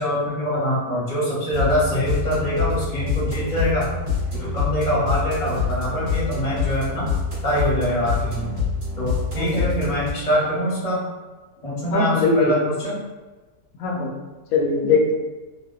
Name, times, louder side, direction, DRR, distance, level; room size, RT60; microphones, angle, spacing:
voice 1, 0.0-3.9 4.4-7.1 7.4-8.5 9.0-11.0 11.6-12.9, equal, 30° left, -8 dB, 0.7 m, -24 dB
sound 1, 1.5-10.1, left 5 dB, 45° right, 1.0 m, -26 dB
voice 2, 9.3-9.7 11.9-12.5 13.8-14.1 14.5-15.1, left 3 dB, 70° left, -1 dB, 1.0 m, -20 dB
2.7 x 2.1 x 2.3 m, 1.2 s
omnidirectional pair, 1.7 m